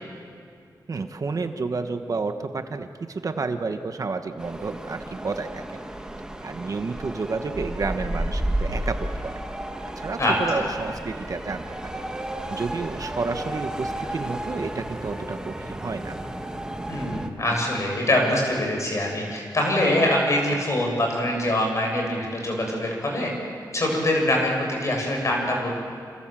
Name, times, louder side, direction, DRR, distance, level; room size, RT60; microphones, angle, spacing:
voice 1, 0.9-5.6 6.4-9.3 9.8-12.0 12.5-16.2, right 4 dB, 50° right, 7 dB, 1.3 m, -30 dB
sound 1, 4.4-17.3, right 1 dB, 10° right, 1.6 m, -33 dB
voice 2, 10.2-10.6 16.9-23.3 23.7-25.8, left 1 dB, 40° left, 0 dB, 7.2 m, -24 dB
28.0 x 28.0 x 7.7 m, 2.3 s
wide cardioid pair, 165°, 8 cm